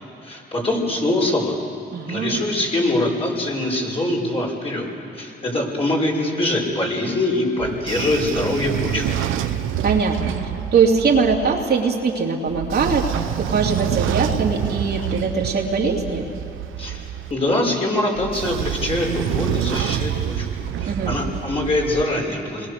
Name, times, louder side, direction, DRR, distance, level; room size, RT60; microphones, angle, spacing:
voice 1, 0.2-1.6 2.1-4.9 5.1-9.2 16.8-20.5 20.8-22.7, left 1 dB, 30° left, -2 dB, 5.9 m, -23 dB
voice 2, 1.9-2.4 9.8-13.1 13.4-16.3 20.9-21.1, right 5 dB, 55° right, -1 dB, 3.0 m, -21 dB
Train / Sliding door, 7.6-11.6 12.5-17.3 18.1-22.0, right 10 dB, 85° right, 0.9 m, -27 dB
29.5 x 22.0 x 6.9 m, 2.5 s
cardioid pair, 90°, 20 cm